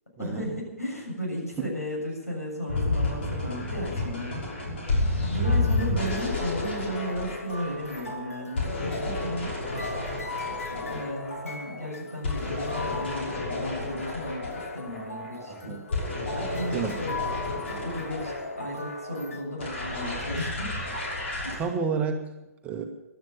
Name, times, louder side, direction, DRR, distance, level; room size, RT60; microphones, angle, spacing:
voice 1, 0.2-4.4 5.2-9.6 10.7-15.8 16.1-20.7 21.4-21.7, equal, 90° left, -1 dB, 7.1 m, -35 dB
sound 1, 2.7-21.5, left 2 dB, 50° left, 5.9 m, -31 dB
sound 2, 5.4-19.4, left 2 dB, 70° left, 2.0 m, -40 dB
voice 2, 15.5-15.8 16.7-17.0 21.5-22.3 22.6-22.9, right 5 dB, 15° right, 4 dB, 1.7 m, -30 dB
16.0 x 11.5 x 7.2 m, 0.95 s
figure-of-eight pair, 125°, 8 cm